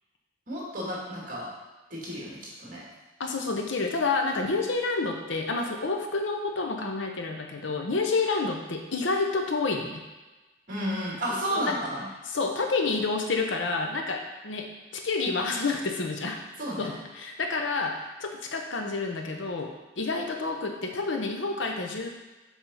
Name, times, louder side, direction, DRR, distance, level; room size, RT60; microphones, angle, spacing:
voice 1, 0.5-1.5 1.9-2.8 10.7-12.1 16.6-17.0, equal, 45° right, -5 dB, 2.5 m, -32 dB
voice 2, 3.2-10.0 11.5-11.8 12.3-16.4 16.8-22.1, left 3 dB, 80° left, 3 dB, 0.9 m, -29 dB
7.2 x 3.7 x 5.6 m, 1.1 s
head